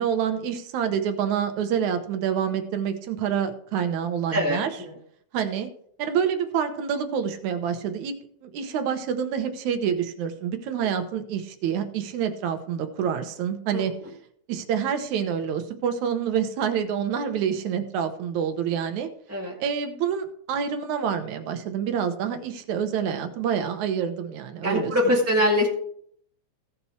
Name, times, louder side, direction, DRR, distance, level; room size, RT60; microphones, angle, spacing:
voice 1, 0.0-4.8 5.3-5.7 6.0-8.2 8.4-13.9 14.5-19.1 19.6-25.1, right 8 dB, 75° right, 8 dB, 2.4 m, -27 dB
voice 2, 4.3-4.6 13.7-13.9 19.3-19.5 24.6-25.7, left 1 dB, 5° right, -5 dB, 1.4 m, -22 dB
16.5 x 5.7 x 4.5 m, 0.64 s
omnidirectional pair, 3.5 m